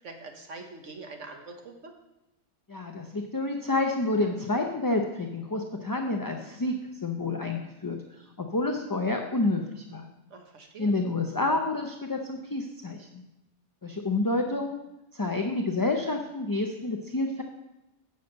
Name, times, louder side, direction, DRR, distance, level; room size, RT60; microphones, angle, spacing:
voice 1, 0.0-1.9 10.3-10.9, right 3 dB, 75° right, 4 dB, 1.5 m, -44 dB
voice 2, 2.7-6.8 7.0-8.0 8.4-10.1 10.8-13.2 13.8-14.8 15.1-17.4, left 2 dB, 25° left, 2 dB, 0.5 m, -29 dB
6.9 x 6.6 x 7.8 m, 0.95 s
omnidirectional pair, 1.3 m